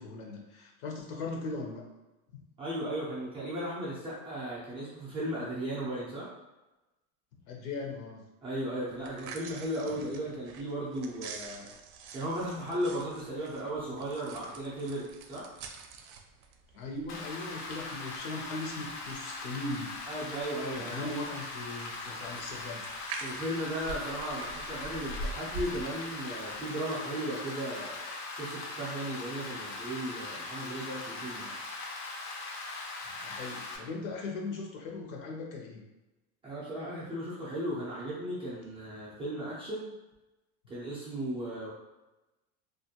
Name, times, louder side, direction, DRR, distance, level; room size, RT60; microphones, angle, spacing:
voice 1, 0.0-1.8 2.3-2.4 7.5-8.2 16.7-20.0 20.7-22.8 33.2-35.8, left 3 dB, 70° left, 0 dB, 0.8 m, -39 dB
voice 2, 2.6-6.3 8.4-11.7 12.1-15.5 20.1-21.1 23.2-28.1 28.4-31.6 36.4-39.9 40.7-41.7, right 1 dB, 15° right, -9 dB, 0.3 m, -36 dB
sound 1, 8.9-26.7, right 3 dB, 75° right, 0.5 m, -46 dB
Rain, 17.1-33.8, left 3 dB, 40° left, 0.5 m, -40 dB
2.4 x 2.2 x 2.7 m, 1.0 s
supercardioid pair, 145°, 42 cm